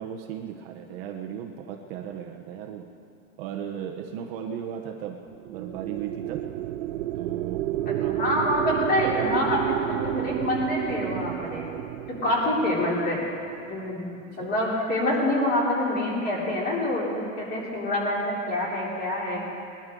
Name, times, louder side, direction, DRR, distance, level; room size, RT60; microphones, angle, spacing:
voice 1, 0.0-3.0 3.4-6.5 7.1-8.6 9.3-9.6 12.2-12.3 14.2-14.6, right 8 dB, 45° right, 3 dB, 1.0 m, -37 dB
sound 1, 5.3-13.8, right 14 dB, 80° right, 0.6 m, -31 dB
voice 2, 7.9-11.6 12.2-13.2 13.7-14.1 14.4-19.4, left 1 dB, 20° left, -4 dB, 3.3 m, -26 dB
21.0 x 12.5 x 3.8 m, 2.5 s
supercardioid pair, 160°, 40 cm